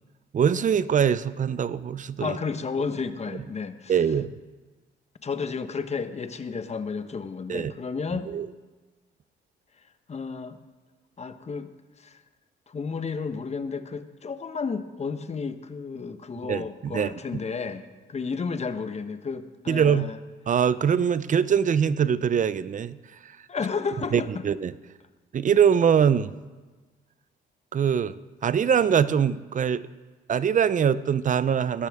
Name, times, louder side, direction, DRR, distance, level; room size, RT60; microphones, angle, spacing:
voice 1, 0.3-2.4 3.9-4.4 7.5-7.7 8.3-8.5 16.4-17.1 19.7-20.1 20.5-23.0 23.2-23.4 24.1-24.7 25.3-26.3 27.7-29.8 30.3-31.9, right 7 dB, 40° right, 16 dB, 0.6 m, -23 dB
voice 2, 2.2-3.9 5.2-8.3 10.1-10.6 11.2-11.7 12.0-12.2 12.7-20.2 23.5-24.3, left 5 dB, 35° left, 10 dB, 1.0 m, -32 dB
16.5 x 13.5 x 3.6 m, 1.3 s
cardioid pair, 90°, 20 cm